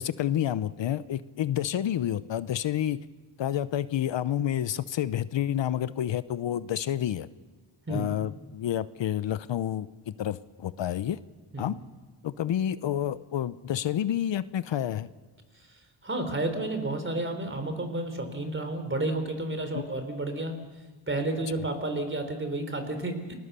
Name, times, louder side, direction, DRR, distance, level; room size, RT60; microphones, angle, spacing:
voice 1, 0.0-3.0 3.4-7.3 7.9-11.2 11.6-11.8 12.2-15.1 19.7-19.8 21.6-21.7, left 11 dB, 70° left, 15 dB, 0.8 m, -29 dB
voice 2, 15.7-20.6 21.1-23.3, right 2 dB, 25° right, 7 dB, 3.8 m, -31 dB
30.0 x 20.5 x 6.8 m, 1.3 s
wide cardioid pair, 120°, 47 cm